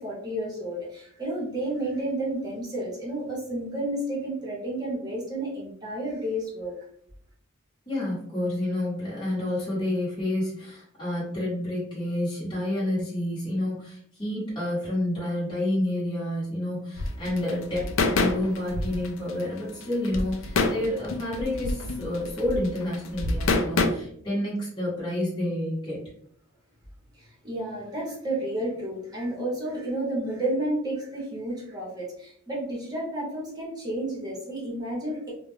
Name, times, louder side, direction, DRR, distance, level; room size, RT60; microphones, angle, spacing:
voice 1, 0.0-6.7 27.1-35.3, right 1 dB, 20° right, -5 dB, 0.9 m, -31 dB
voice 2, 7.9-26.0, left 1 dB, 20° left, -9 dB, 1.0 m, -29 dB
sound 1, 17.0-23.9, left 3 dB, 65° left, 0.4 m, -27 dB
2.4 x 2.1 x 3.1 m, 0.65 s
head